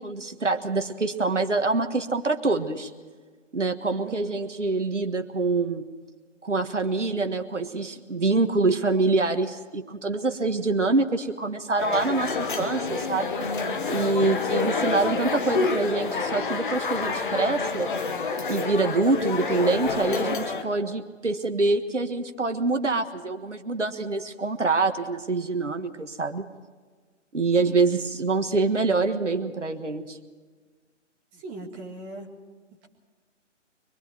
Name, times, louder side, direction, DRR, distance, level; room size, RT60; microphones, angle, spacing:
voice 1, 0.0-2.9 3.5-5.9 6.4-13.4 13.9-17.9 18.5-26.5 27.3-30.2, right 3 dB, 70° right, 7 dB, 1.6 m, -25 dB
sound 1, 11.8-20.6, left 4 dB, 40° left, 1.9 m, -28 dB
voice 2, 31.3-32.3, right 3 dB, 15° right, -1 dB, 1.9 m, -39 dB
25.0 x 23.0 x 4.6 m, 1.5 s
figure-of-eight pair, 140°, 37 cm